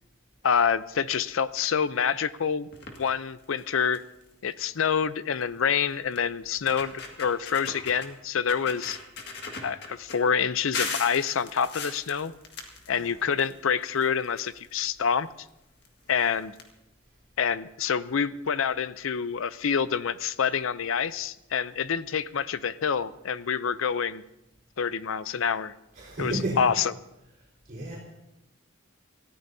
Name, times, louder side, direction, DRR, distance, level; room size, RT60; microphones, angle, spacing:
voice 1, 0.4-2.7 3.0-4.0 4.4-9.0 9.6-12.3 12.9-15.3 16.1-16.5 17.4-24.2 24.8-25.7 26.2-26.9, left 7 dB, 85° left, 16 dB, 0.5 m, -27 dB
sound 1, 2.7-3.1 3.6-3.7 3.9-4.2 5.4-5.5 6.1-6.2 6.6-8.1 8.5-10.2 10.7-13.5 13.8-14.9 15.8-15.9 16.2-16.3 16.5-16.6, left 4 dB, 55° left, 1.8 m, -37 dB
voice 2, 26.0-26.6 27.7-28.0, right 1 dB, 45° right, -5 dB, 4.3 m, -32 dB
27.5 x 14.0 x 2.7 m, 0.89 s
head